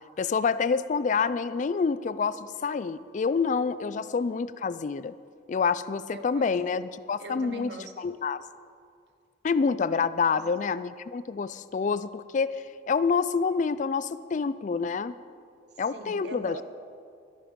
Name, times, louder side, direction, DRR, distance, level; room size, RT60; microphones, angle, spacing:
voice 1, 0.2-5.1 5.5-7.7 8.0-8.4 9.4-15.1 15.8-16.6, left 5 dB, 40° left, 15 dB, 0.3 m, -27 dB
voice 2, 6.1-6.5 7.2-8.0 10.2-10.4 15.9-16.6, right 2 dB, 65° right, 7 dB, 1.1 m, -41 dB
13.0 x 12.0 x 5.2 m, 2.3 s
head